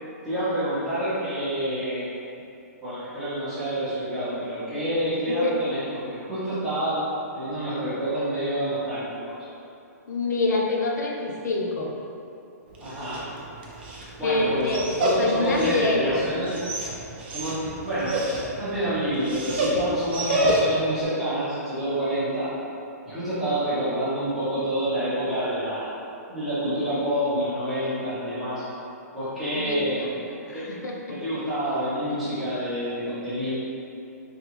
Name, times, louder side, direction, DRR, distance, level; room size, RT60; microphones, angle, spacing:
voice 1, 0.2-2.1 2.8-7.0 7.3-9.3 12.8-13.2 14.2-16.6 17.3-22.5 23.1-25.9 26.3-28.6 29.1-30.2 30.5-30.6 31.1-33.5, right 1 dB, ahead, -16 dB, 0.8 m, -28 dB
voice 2, 10.1-11.9 14.2-16.3 29.5-30.1 30.5-31.2 32.4-32.5, left 2 dB, 90° left, 0 dB, 0.6 m, -26 dB
Dog, 12.7-21.0, equal, 35° right, 0.4 m, -29 dB
3.5 x 2.3 x 3.0 m, 2.7 s
hypercardioid pair, 180°, 9 cm